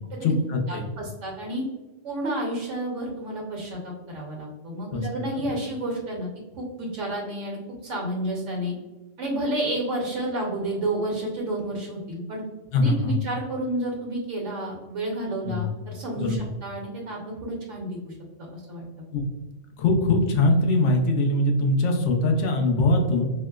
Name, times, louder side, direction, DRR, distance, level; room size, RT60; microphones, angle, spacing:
voice 1, 0.0-0.9 4.9-5.1 12.7-13.2 15.5-15.7 16.2-16.5 19.1-19.3 19.8-23.2, left 2 dB, 75° left, 2 dB, 0.9 m, -22 dB
voice 2, 0.7-1.6 2.0-6.3 6.5-8.7 9.2-12.4 12.8-18.1 18.5-18.8, right 1 dB, 75° right, -2 dB, 1.1 m, -30 dB
4.4 x 2.0 x 2.3 m, 1.1 s
omnidirectional pair, 1.3 m